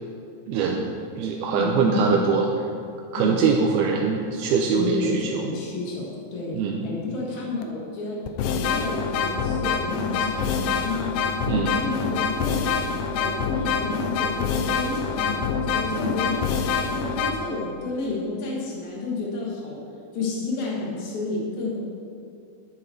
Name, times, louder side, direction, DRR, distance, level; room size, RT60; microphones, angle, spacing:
voice 1, 0.5-0.9 1.2-2.5 3.1-5.4 6.5-6.9 11.5-11.8, right 5 dB, 80° right, 0 dB, 2.7 m, -23 dB
voice 2, 1.5-2.2 3.2-3.4 4.7-6.5 6.8-8.2 8.5-11.1 11.6-12.6 13.1-15.5 15.7-19.8 20.1-21.8, left 3 dB, 50° left, -4 dB, 3.3 m, -31 dB
sound 1, 7.6-7.7 8.3-17.3, left 5 dB, 85° left, 2.9 m, -25 dB
13.0 x 9.7 x 4.7 m, 2.5 s
omnidirectional pair, 4.7 m